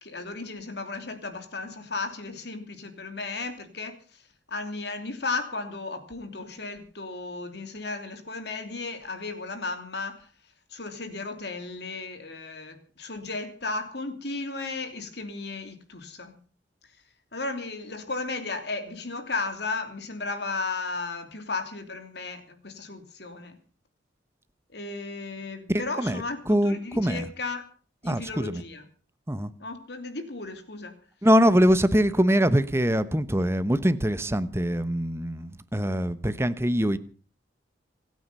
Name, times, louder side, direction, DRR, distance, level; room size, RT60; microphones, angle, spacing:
voice 1, 0.0-4.0 4.5-10.3 10.7-16.4 17.3-23.6 24.7-26.4 26.6-27.7 28.0-28.8 29.6-31.0, left 3 dB, 60° left, 3.0 m, -34 dB
voice 2, 25.7-27.3 28.0-28.6 29.3-29.5 31.2-37.0, equal, 15° right, 1.0 m, -23 dB
26.5 x 9.4 x 5.6 m
head